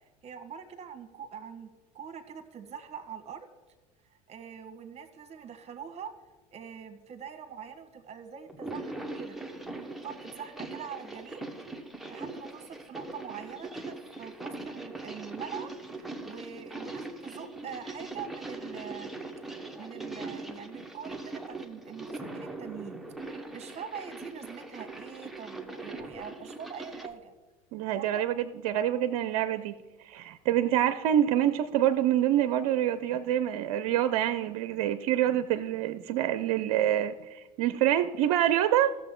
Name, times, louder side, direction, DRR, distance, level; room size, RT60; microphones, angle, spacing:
voice 1, 0.2-1.7 1.9-3.5 4.3-6.1 6.5-9.4 9.8-11.4 12.1-19.1 19.7-27.3 27.9-28.2, right 7 dB, 35° right, 9 dB, 1.4 m, -43 dB
sound 1, 8.5-27.1, right 2 dB, ahead, 1.1 m, -41 dB
voice 2, 27.7-29.7 30.0-38.9, right 11 dB, 65° right, 13 dB, 0.5 m, -26 dB
15.5 x 6.8 x 3.8 m, 1.2 s
hypercardioid pair, 80°, 18 cm